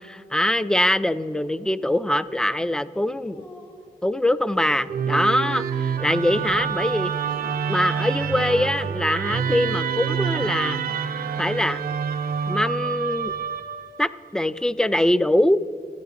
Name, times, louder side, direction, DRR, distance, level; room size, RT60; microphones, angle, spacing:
voice 1, 0.0-3.5 4.0-7.1 7.7-10.8 11.4-11.8 12.5-13.3 14.0-15.6, left 1 dB, 5° left, 16 dB, 0.3 m, -23 dB
sound 1, 3.3-3.8 4.5-5.0 5.7-6.5 7.3-7.7 8.5-8.9 10.0-10.6 11.3-12.0 12.6-13.4, left 1 dB, 85° left, 2.7 m, -46 dB
Musical instrument, 4.9-14.1, right 7 dB, 85° right, 0.5 m, -27 dB
12.0 x 9.3 x 4.0 m, 2.5 s
cardioid pair, 60°, 15 cm